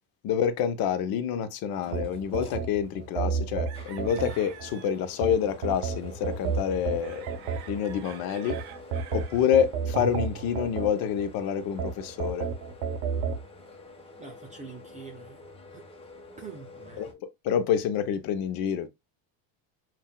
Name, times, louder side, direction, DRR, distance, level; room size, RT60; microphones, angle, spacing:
voice 1, 0.2-7.3 7.7-8.6 9.1-12.5 17.0-17.1 17.4-18.9, left 8 dB, 50° left, 0.8 m, -27 dB
sound 1, 1.7-17.1, left 3 dB, 10° left, 1.0 m, -48 dB
sound 2, 1.9-4.7 5.2-8.0 8.5-11.3 11.8-13.4, right 6 dB, 80° right, 1.1 m, -31 dB
sound 3, 2.8-3.4 3.7-5.0 5.3-5.8 6.3-6.4 6.5-9.5 10.2-10.3 10.5-10.6, right 11 dB, 50° right, 0.8 m, -48 dB
voice 2, 14.2-15.4 15.7-15.8 16.4-17.1, right 5 dB, 15° right, 0.5 m, -45 dB
7.4 x 2.6 x 2.2 m
cardioid pair, 160°, 48 cm